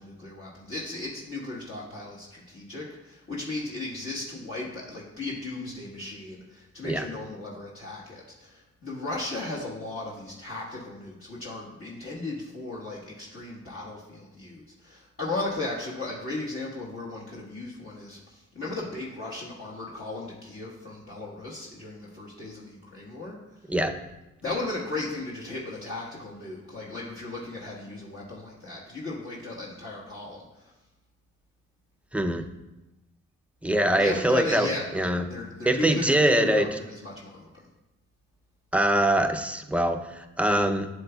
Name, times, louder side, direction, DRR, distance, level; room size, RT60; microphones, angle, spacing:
voice 1, 0.0-23.7 24.4-30.7 34.0-37.5, left 2 dB, 45° left, -5 dB, 1.4 m, -36 dB
voice 2, 32.1-32.5 33.6-34.7 34.9-35.2 35.7-36.7 38.7-40.9, right 1 dB, 5° right, 6 dB, 0.5 m, -23 dB
7.8 x 6.8 x 2.3 m, 1.0 s
cardioid pair, 65°, 29 cm